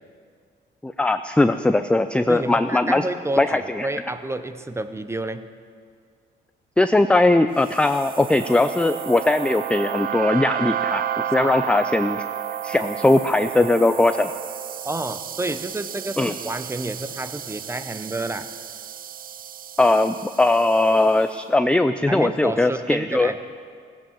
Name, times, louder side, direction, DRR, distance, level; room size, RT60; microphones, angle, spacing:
voice 1, 0.8-3.0 3.4-3.9 6.8-12.2 12.6-14.3 16.2-16.3 19.8-23.3, left 2 dB, 5° left, 9 dB, 0.4 m, -20 dB
voice 2, 2.3-5.5 11.4-11.5 14.8-18.5 22.1-23.4, right 2 dB, 15° right, 10 dB, 0.8 m, -29 dB
sound 1, 7.6-21.0, right 10 dB, 45° right, 0.5 m, -31 dB
17.0 x 8.6 x 7.2 m, 2.1 s
cardioid pair, 90°, 20 cm